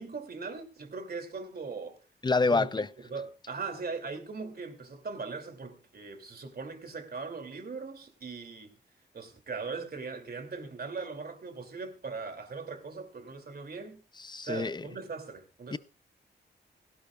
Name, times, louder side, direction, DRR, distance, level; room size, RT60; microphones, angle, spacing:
voice 1, 0.0-2.0 2.5-8.8 9.1-14.0 14.4-15.8, right 4 dB, 60° right, 2.7 m, -40 dB
voice 2, 2.2-2.9 14.2-14.8 15.7-15.8, left 3 dB, 25° left, 0.6 m, -27 dB
17.0 x 16.5 x 2.4 m
cardioid pair, 65°, 18 cm